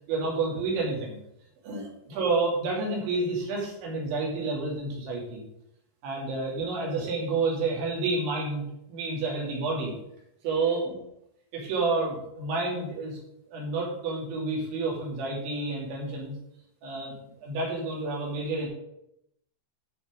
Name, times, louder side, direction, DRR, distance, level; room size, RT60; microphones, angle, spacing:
voice 1, 0.1-1.2 1.6-5.4 6.0-9.9 10.4-10.9 11.5-13.2 13.5-16.4 16.8-17.2 17.4-18.7, right 3 dB, 80° right, -3 dB, 5.1 m, -29 dB
12.0 x 5.6 x 5.2 m, 0.79 s
omnidirectional pair, 5.2 m